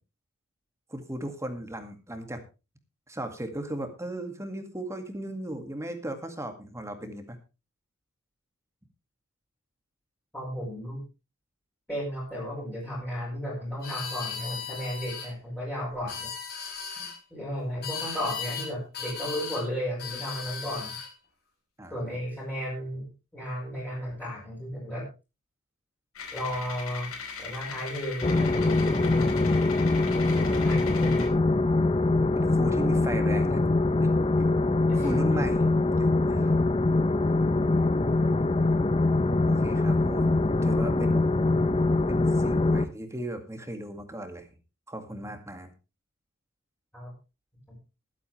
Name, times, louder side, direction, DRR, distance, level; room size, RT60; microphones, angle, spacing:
voice 1, 0.9-2.4 3.1-7.4 17.0-17.1 21.8-22.2 32.3-33.6 34.0-34.6 34.9-35.7 36.0-36.5 39.5-40.3 40.6-41.2 42.1-44.5 44.9-45.7, right 1 dB, 15° right, 6 dB, 2.0 m, -36 dB
voice 2, 10.3-11.0 11.9-16.3 17.3-20.9 21.9-23.1 23.3-25.1 26.3-27.1 27.4-29.3 30.3-31.4 34.9-35.4 46.9-47.1, equal, 10° left, -7 dB, 6.0 m, -34 dB
sound 1, 13.8-15.3 15.9-17.1 17.8-18.7 18.9-19.6 20.0-21.1, left 6 dB, 50° left, 7.6 m, -36 dB
sound 2, 26.1-31.3, left 5 dB, 75° left, 4.6 m, -39 dB
sound 3, 28.2-42.9, left 2 dB, 25° left, 0.7 m, -23 dB
21.0 x 8.5 x 3.3 m, 0.30 s
head